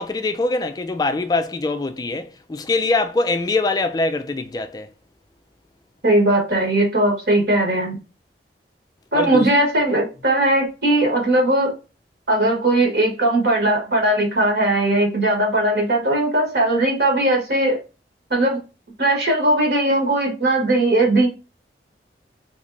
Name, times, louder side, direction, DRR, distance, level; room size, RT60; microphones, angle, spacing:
voice 1, 0.0-4.9 9.1-9.5, left 3 dB, 20° left, 0.3 m, -23 dB
voice 2, 6.0-8.0 9.1-11.7 12.3-17.8 18.3-18.6 19.0-21.3, right 1 dB, 60° right, 1.4 m, -19 dB
3.5 x 3.2 x 2.6 m
head